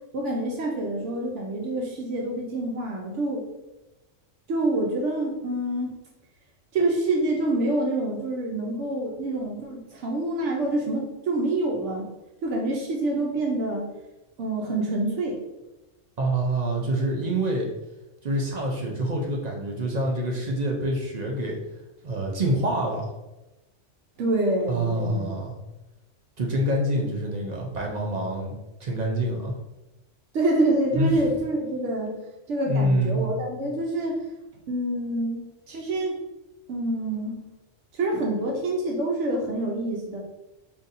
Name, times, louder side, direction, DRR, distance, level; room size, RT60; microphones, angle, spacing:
voice 1, 0.1-3.5 4.5-5.9 6.7-12.1 12.4-13.9 14.4-15.4 24.2-25.2 30.3-32.2 32.5-34.2 34.7-36.2 36.7-37.4 37.9-40.2, right 2 dB, 70° right, 0 dB, 0.9 m, -26 dB
voice 2, 16.2-17.7 18.2-21.6 22.0-23.1 24.7-25.5 26.4-29.6 30.9-31.3 32.7-33.3, right 1 dB, 50° right, -1 dB, 0.5 m, -26 dB
3.9 x 2.7 x 2.5 m, 1.0 s
omnidirectional pair, 1.3 m